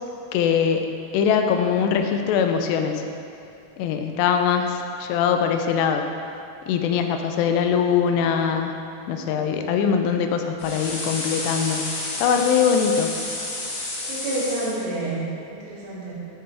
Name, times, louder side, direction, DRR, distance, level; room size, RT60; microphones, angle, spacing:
voice 1, 0.3-0.9 1.1-3.0 3.8-6.0 6.7-8.7 9.1-13.1, left 7 dB, 90° left, 5 dB, 2.8 m, -22 dB
voice 2, 6.9-7.3 14.1-16.1, right 2 dB, 75° right, -7 dB, 3.7 m, -29 dB
sound 1, 10.6-14.8, left 2 dB, 70° left, 3.6 m, -30 dB
9.7 x 6.7 x 3.3 m, 2.6 s
omnidirectional pair, 4.8 m